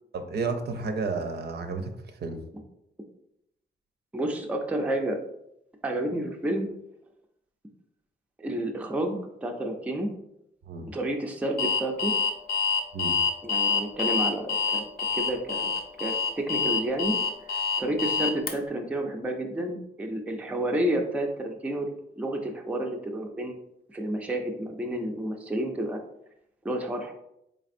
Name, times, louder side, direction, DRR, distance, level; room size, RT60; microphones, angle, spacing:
voice 1, 0.1-1.9 2.2-2.4 10.7-10.9 12.9-13.2, right 4 dB, 65° right, 6 dB, 0.5 m, -31 dB
voice 2, 4.1-5.2 5.8-6.7 8.4-10.1 10.9-12.1 13.4-21.9 22.2-23.6 23.9-26.0 26.6-27.1, right 1 dB, 10° right, 3 dB, 0.4 m, -30 dB
Alarm, 11.6-18.5, left 5 dB, 60° left, 0.6 m, -26 dB
4.2 x 3.3 x 2.5 m, 0.79 s
wide cardioid pair, 150°, 18 cm